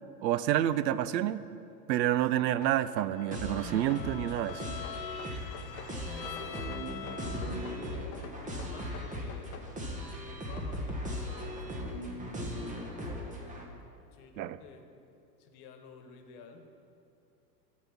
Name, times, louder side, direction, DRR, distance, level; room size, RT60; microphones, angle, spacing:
voice 1, 0.2-1.4 1.9-4.6 14.4-14.6, right 12 dB, 80° right, 15 dB, 0.6 m, -28 dB
sound 1, 2.6-4.1 4.4-5.9 6.2-7.8 8.1-9.7, left 7 dB, 30° left, 0.8 m, -48 dB
Bowed string instrument, 3.1-7.8, left 12 dB, 85° left, 0.6 m, -45 dB
sound 2, 3.3-13.6, equal, 15° right, 1.2 m, -38 dB
voice 2, 5.5-13.4 14.1-14.8 15.4-16.7, left 4 dB, 60° left, 6 dB, 1.3 m, -52 dB
11.0 x 4.1 x 7.1 m, 2.5 s
hypercardioid pair, 110°, 50 cm